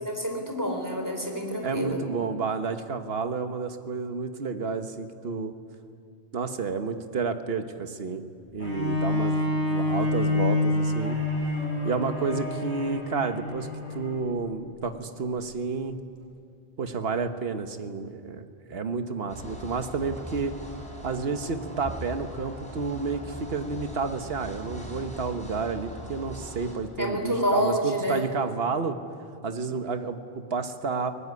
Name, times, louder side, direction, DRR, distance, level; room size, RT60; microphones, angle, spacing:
voice 1, 0.0-2.0 27.0-28.2, equal, 15° right, 3 dB, 3.9 m, -28 dB
voice 2, 1.6-5.5 6.3-8.2 8.5-11.2 11.8-16.0 16.8-20.5 21.0-29.0 29.4-31.1, right 4 dB, 60° right, 8 dB, 1.5 m, -30 dB
Bowed string instrument, 8.6-14.2 14.9-15.0, left 2 dB, 75° left, 6.3 m, -27 dB
sound 1, 19.3-26.7, left 1 dB, 5° left, 5.4 m, -40 dB
23.0 x 19.0 x 9.7 m, 2.3 s
omnidirectional pair, 1.1 m